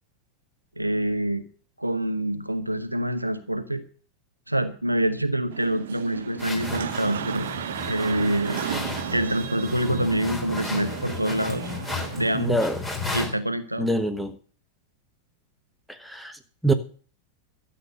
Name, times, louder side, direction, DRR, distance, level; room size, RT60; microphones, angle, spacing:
voice 1, 0.8-1.5 1.8-3.8 4.5-7.5 7.9-8.6 9.1-11.7 12.2-12.6 13.1-13.9, right 1 dB, 85° right, 10 dB, 1.0 m, -26 dB
sound 1, 5.5-12.4, right 9 dB, 60° right, 0.8 m, -34 dB
sound 2, 6.4-13.3, left 3 dB, 15° left, 3.5 m, -34 dB
voice 2, 12.3-12.8 13.8-14.3 15.9-16.7, right 1 dB, ahead, 5 dB, 1.3 m, -25 dB
12.5 x 7.7 x 6.6 m, 0.42 s
figure-of-eight pair, 90°, 0 cm